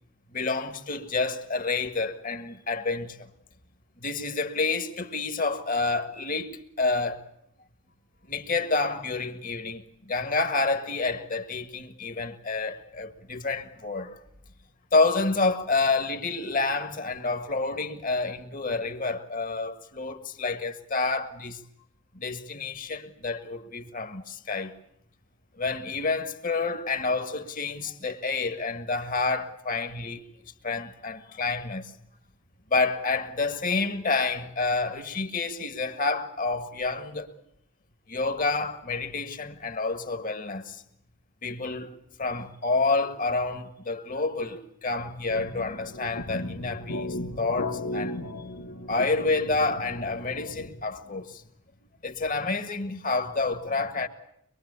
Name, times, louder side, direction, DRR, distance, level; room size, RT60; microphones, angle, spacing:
voice 1, 0.3-3.3 4.0-7.2 8.3-14.2 14.9-21.6 22.2-24.7 25.6-30.2 30.6-31.9 32.7-37.3 38.1-40.8 41.4-48.2 48.9-51.4 52.0-54.1, left 3 dB, 40° left, 1.8 m, -29 dB
sound 1, 45.3-50.7, left 1 dB, 85° left, 1.8 m, -36 dB
24.0 x 23.0 x 8.4 m
head